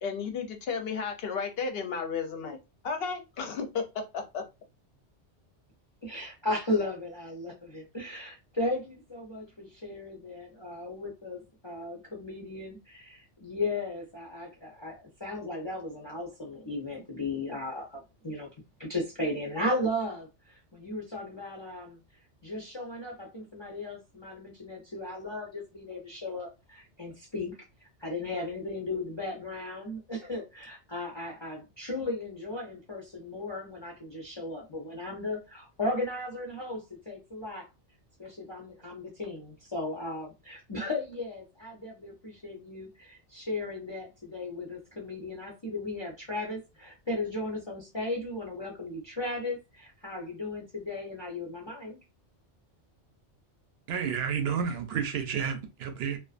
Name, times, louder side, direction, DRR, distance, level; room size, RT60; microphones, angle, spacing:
voice 1, 0.0-2.6 2.8-3.9 4.1-4.4, left 5 dB, 65° left, 0.7 m, -33 dB
voice 2, 6.0-18.5 18.8-22.0 22.4-37.7 38.2-52.0, left 2 dB, 40° left, 0.4 m, -36 dB
voice 3, 53.9-56.2, right 7 dB, 65° right, 0.7 m, -30 dB
2.4 x 2.2 x 2.4 m
omnidirectional pair, 1.2 m